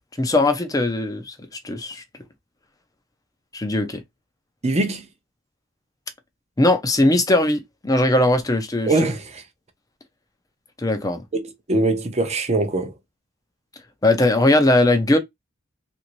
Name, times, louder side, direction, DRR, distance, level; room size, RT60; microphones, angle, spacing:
voice 1, 0.2-1.3 1.6-2.0 3.5-4.0 6.6-8.9 10.8-11.2 14.0-15.2, left 2 dB, 15° left, 0.6 m, -19 dB
voice 2, 4.6-5.0 8.9-9.4 11.3-12.9, right 2 dB, 30° right, 0.7 m, -22 dB
3.1 x 2.6 x 3.0 m
head